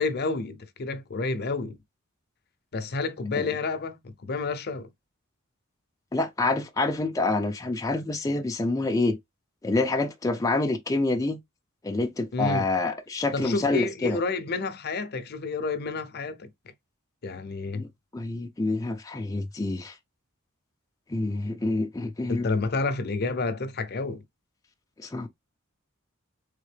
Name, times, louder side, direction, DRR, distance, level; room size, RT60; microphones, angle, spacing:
voice 1, 0.0-1.8 2.7-4.9 12.3-12.7 13.3-16.5 17.2-17.9 22.3-24.2, left 3 dB, 50° left, 0.6 m, -29 dB
voice 2, 6.1-9.2 9.6-11.4 11.8-14.2 17.7-17.9 18.1-19.9 21.1-22.5 25.0-25.3, left 2 dB, 15° left, 0.4 m, -27 dB
3.6 x 3.6 x 3.3 m
head